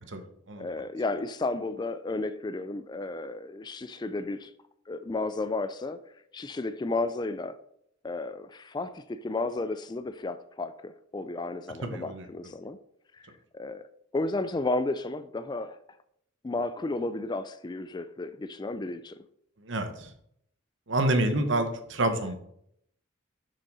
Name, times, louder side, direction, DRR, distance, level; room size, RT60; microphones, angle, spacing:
voice 1, 0.6-4.5 4.9-6.0 6.3-7.6 8.0-12.8 13.1-15.8 16.4-19.2, left 2 dB, 20° left, 13 dB, 0.3 m, -33 dB
voice 2, 11.8-12.3 19.7-20.1 20.9-22.4, right 1 dB, 60° right, 7 dB, 1.1 m, -28 dB
7.2 x 5.4 x 5.5 m, 0.72 s
head